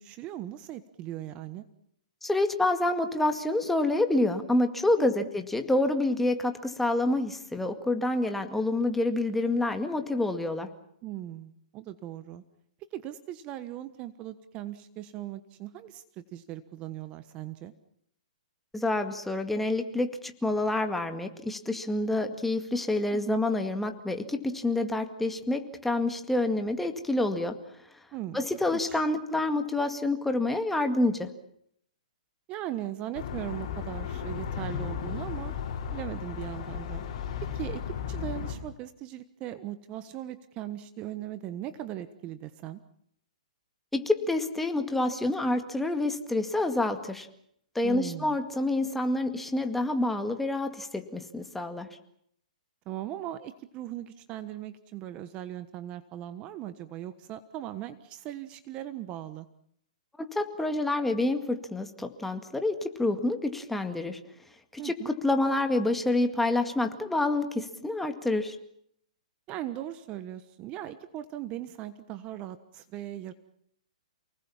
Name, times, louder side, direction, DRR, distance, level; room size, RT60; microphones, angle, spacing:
voice 1, 0.0-1.6 5.0-5.3 11.0-12.4 12.9-17.7 23.1-23.4 28.1-29.0 32.5-35.5 35.9-37.1 37.4-42.8 47.8-48.4 52.8-59.5 64.8-65.1 69.5-73.3, right 12 dB, 25° right, 12 dB, 1.3 m, -39 dB
voice 2, 2.2-10.7 18.7-27.6 28.3-31.3 43.9-47.3 47.8-51.9 60.2-64.2 64.8-68.6, left 2 dB, 5° left, 6 dB, 2.1 m, -28 dB
sound 1, 33.1-38.5, left 7 dB, 45° left, 7.8 m, -35 dB
29.0 x 19.5 x 7.3 m, 0.71 s
hypercardioid pair, 150°, 4 cm